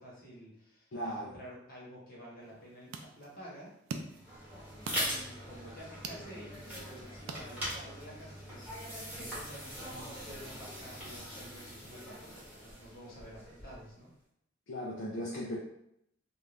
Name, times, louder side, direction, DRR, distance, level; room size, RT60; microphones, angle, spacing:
voice 1, 0.0-3.7 4.9-14.1, equal, 45° left, -4 dB, 1.0 m, -50 dB
voice 2, 0.9-1.4 14.7-15.6, equal, 65° left, -4 dB, 0.5 m, -37 dB
sound 1, 2.4-8.1, right 4 dB, 80° right, 0.4 m, -47 dB
sound 2, 4.1-13.9, equal, 10° right, 1.1 m, -42 dB
2.5 x 2.3 x 3.2 m, 0.77 s
head